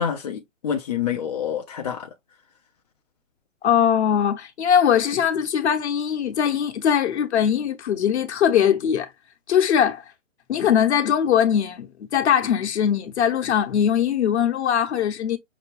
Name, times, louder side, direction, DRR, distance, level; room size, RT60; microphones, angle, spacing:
voice 1, 0.0-2.1, left 8 dB, 35° left, 0.5 m, -27 dB
voice 2, 3.6-9.1 9.5-10.0 10.5-15.4, left 8 dB, 60° left, 1.1 m, -21 dB
5.8 x 2.3 x 3.2 m
hypercardioid pair, 140°, 38 cm